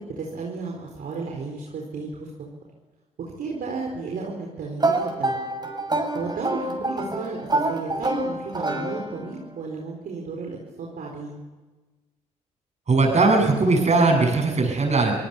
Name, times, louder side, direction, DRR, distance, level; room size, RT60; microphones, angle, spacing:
voice 1, 0.2-2.3 3.4-5.4 6.1-11.4, right 4 dB, 65° right, -1 dB, 4.5 m, -33 dB
sound 1, 4.8-9.4, right 2 dB, 25° right, 7.0 m, -27 dB
voice 2, 12.9-15.1, right 3 dB, 45° right, 3 dB, 7.8 m, -19 dB
27.5 x 18.5 x 7.1 m, 1.2 s
hypercardioid pair, 50°, 16 cm